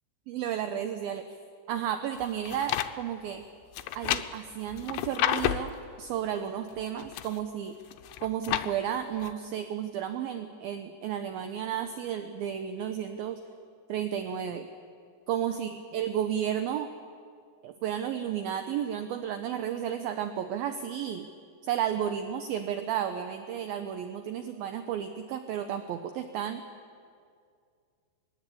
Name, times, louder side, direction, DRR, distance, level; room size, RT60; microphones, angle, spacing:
voice 1, 0.3-1.3 1.7-3.4 4.0-7.8 8.2-13.4 13.9-14.7 15.3-16.9 17.6-21.3 21.6-26.6, right 9 dB, 75° right, 7 dB, 2.2 m, -32 dB
sound 1, 2.2-2.9 3.7-5.8 6.7-7.4 7.9-8.7 9.2-9.3, left 13 dB, 80° left, 3.0 m, -30 dB
22.0 x 20.5 x 8.5 m, 2.2 s
omnidirectional pair, 5.2 m